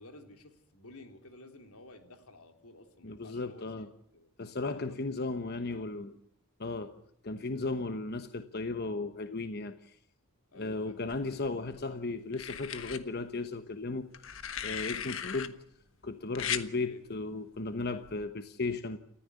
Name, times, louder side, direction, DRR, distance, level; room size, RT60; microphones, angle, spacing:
voice 1, 0.0-4.3 4.8-5.1 5.4-6.2 10.5-11.0 16.8-17.0, left 2 dB, 85° left, 3.3 m, -53 dB
voice 2, 3.0-3.9 4.4-6.1 6.6-10.0 10.5-14.2 14.6-15.6 16.0-19.0, left 3 dB, 45° left, 1.1 m, -35 dB
sound 1, 11.1-11.8 12.3-13.0 14.1-15.5 16.4-16.7 18.0-18.2, left 9 dB, 60° left, 1.4 m, -37 dB
29.5 x 14.5 x 9.6 m
head